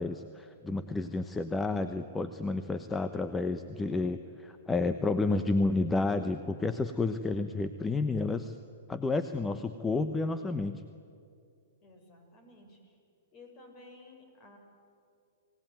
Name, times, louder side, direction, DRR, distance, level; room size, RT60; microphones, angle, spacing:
voice 1, 0.0-8.6 8.9-10.8, left 3 dB, 10° left, 10 dB, 0.9 m, -30 dB
voice 2, 11.8-13.0 13.3-14.6, left 2 dB, 35° left, 4 dB, 6.2 m, -54 dB
27.0 x 18.5 x 9.2 m, 2.4 s
hypercardioid pair, 125°, 0 cm